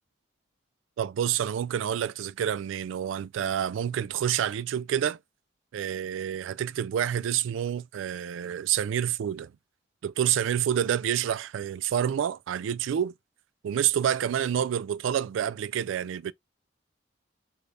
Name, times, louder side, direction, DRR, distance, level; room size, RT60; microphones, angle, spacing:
voice 1, 1.0-5.2 5.7-9.5 10.0-13.1 13.6-16.3, right 9 dB, 90° right, 0.3 m, -28 dB
3.9 x 2.3 x 3.3 m
head